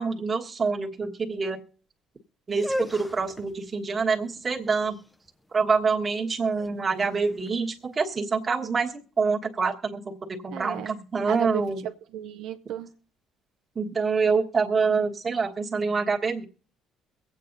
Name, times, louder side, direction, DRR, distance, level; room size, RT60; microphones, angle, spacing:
voice 1, 0.0-1.6 2.5-5.0 5.5-11.8 13.7-16.4, right 4 dB, 25° right, 0 dB, 1.4 m, -26 dB
sound 1, 2.5-8.4, equal, 5° left, 0.6 m, -38 dB
voice 2, 10.5-11.0 11.3-12.9, right 10 dB, 75° right, 6 dB, 0.6 m, -34 dB
23.5 x 8.5 x 2.6 m, 0.43 s
cardioid pair, 130°, 0 cm